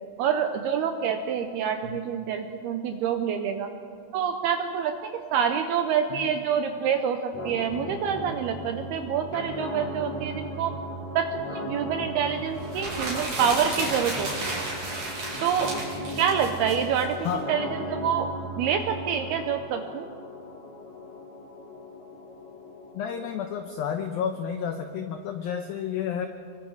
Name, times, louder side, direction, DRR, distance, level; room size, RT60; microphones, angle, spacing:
voice 1, 0.2-3.7 4.1-10.7 11.2-14.6 15.4-15.7 16.2-18.3 18.6-20.0, right 7 dB, 80° right, 6 dB, 2.3 m, -27 dB
sound 1, 7.3-23.3, equal, 35° left, 4.9 m, -37 dB
sound 2, 12.6-17.3, right 2 dB, 45° right, 6.6 m, -33 dB
voice 2, 22.9-26.3, left 8 dB, 90° left, 6 dB, 2.0 m, -31 dB
29.5 x 23.0 x 4.7 m, 2.4 s
omnidirectional pair, 5.4 m